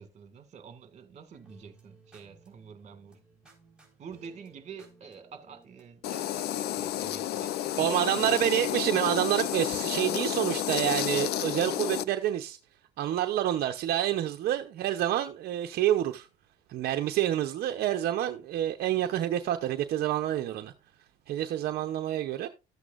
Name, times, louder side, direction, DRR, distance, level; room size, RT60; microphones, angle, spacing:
voice 1, 0.0-3.2 4.0-8.2, right 6 dB, 45° right, 2.0 m, -48 dB
sound 1, 1.3-7.0, right 3 dB, 5° right, 4.5 m, -59 dB
sound 2, 6.0-12.0, left 12 dB, 70° left, 0.6 m, -31 dB
voice 2, 7.8-12.6 13.0-16.3 16.7-20.7 21.3-22.5, right 12 dB, 70° right, 0.8 m, -28 dB
13.0 x 8.2 x 2.5 m
cardioid pair, 110°, 17 cm